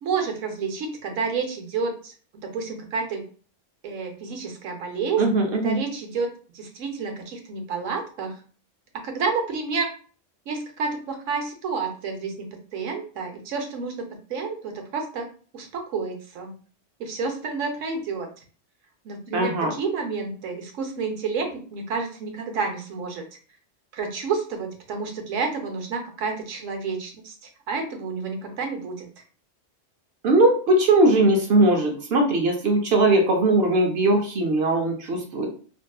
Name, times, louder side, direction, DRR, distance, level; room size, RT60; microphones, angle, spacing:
voice 1, 0.0-3.3 3.8-5.2 5.5-8.4 9.0-9.9 10.5-12.5 12.7-15.3 15.5-16.6 17.0-18.3 19.0-23.3 23.9-29.1, right 5 dB, 85° right, 4 dB, 1.0 m, -30 dB
voice 2, 5.2-5.8 19.3-19.7 30.2-35.5, right 2 dB, 60° right, 2 dB, 0.8 m, -20 dB
2.6 x 2.4 x 2.2 m, 0.40 s
omnidirectional pair, 1.3 m